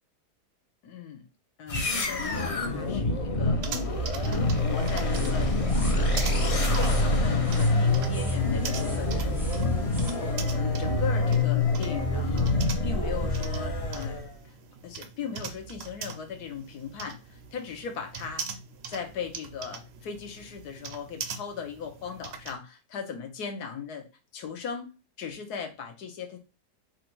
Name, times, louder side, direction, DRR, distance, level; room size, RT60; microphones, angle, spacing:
voice 1, 0.8-1.2 1.6-4.0 4.3-5.5 5.9-9.4 10.5-14.6 14.8-18.5 18.8-24.9 25.2-26.4, left 6 dB, 75° left, 5 dB, 1.4 m, -38 dB
sound 1, 1.7-14.3, left 2 dB, 40° left, 0.5 m, -26 dB
sound 2, 3.6-22.6, right 5 dB, 65° right, 0.6 m, -42 dB
sound 3, 4.9-10.3, right 1 dB, ahead, 0.6 m, -40 dB
4.4 x 2.6 x 4.5 m, 0.29 s
omnidirectional pair, 1.7 m